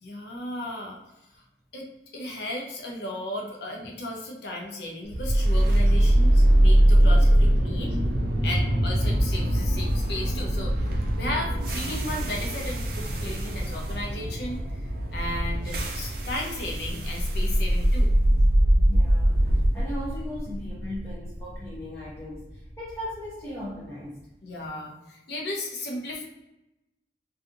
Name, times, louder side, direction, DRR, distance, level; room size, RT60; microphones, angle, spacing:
voice 1, 0.0-1.0 1.3-1.4 1.7-1.9 2.1-8.0 8.4-14.6 15.1-18.1 24.4-26.2, left 1 dB, 65° left, 0 dB, 0.6 m, -35 dB
sound 1, 5.1-23.2, right 1 dB, 55° right, 0.4 m, -23 dB
sound 2, 7.3-12.4, equal, 40° left, 0.9 m, -30 dB
voice 2, 18.9-19.5 19.7-24.3, left 1 dB, 15° left, -7 dB, 0.5 m, -38 dB
2.6 x 2.4 x 2.5 m, 0.91 s
head